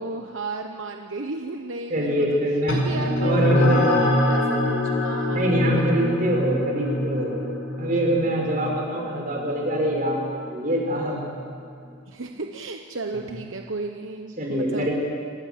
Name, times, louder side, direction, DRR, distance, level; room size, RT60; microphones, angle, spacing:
voice 1, 0.0-2.4 2.7-5.9 12.1-14.9, right 3 dB, 75° right, 3 dB, 1.1 m, -34 dB
voice 2, 1.9-4.1 5.3-7.4 7.8-11.2 13.1-13.2 14.4-14.9, right 1 dB, 40° right, -1 dB, 5.4 m, -24 dB
sound 1, 2.7-11.5, left 1 dB, 75° left, 5.2 m, -25 dB
27.0 x 17.5 x 7.7 m, 2.2 s
head